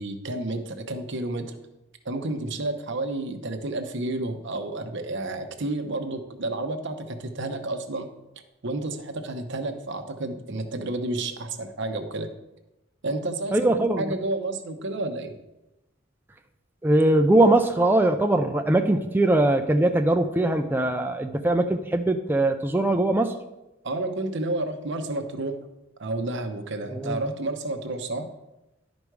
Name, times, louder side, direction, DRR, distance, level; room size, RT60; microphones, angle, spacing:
voice 1, 0.0-1.6 2.0-8.1 8.6-12.3 13.0-13.7 14.0-15.3 23.8-25.6 26.0-28.3, right 2 dB, 60° right, 6 dB, 0.9 m, -30 dB
voice 2, 13.5-14.1 16.8-23.4 26.9-27.2, right 1 dB, 10° right, 5 dB, 0.4 m, -21 dB
11.0 x 5.2 x 4.7 m, 0.96 s
head